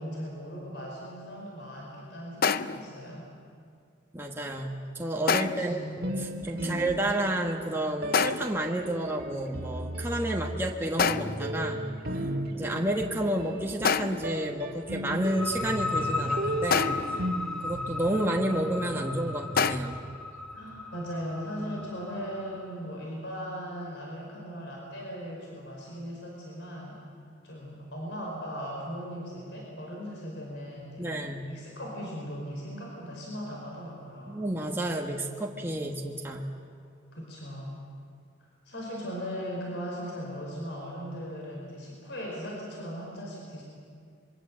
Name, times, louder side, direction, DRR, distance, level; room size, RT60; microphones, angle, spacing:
voice 1, 0.0-3.3 5.4-6.1 6.5-6.9 20.5-27.0 27.4-34.4 37.1-37.8 38.6-43.6, equal, 65° left, -2 dB, 5.1 m, -38 dB
sound 1, 2.4-2.9 5.3-5.8 8.1-8.6 11.0-11.5 13.8-14.4 16.7-17.2 19.6-19.8, left 6 dB, 50° left, 0.6 m, -27 dB
voice 2, 4.1-11.9 12.5-17.2 17.6-20.1 31.0-31.5 34.3-36.5, right 1 dB, 10° right, 0 dB, 1.4 m, -31 dB
sound 2, 6.0-7.5 8.0-20.2, equal, 50° right, 1.9 m, -36 dB
sound 3, 15.2-22.7, left 3 dB, 5° left, 1.8 m, -35 dB
26.0 x 23.5 x 7.6 m, 2.3 s
head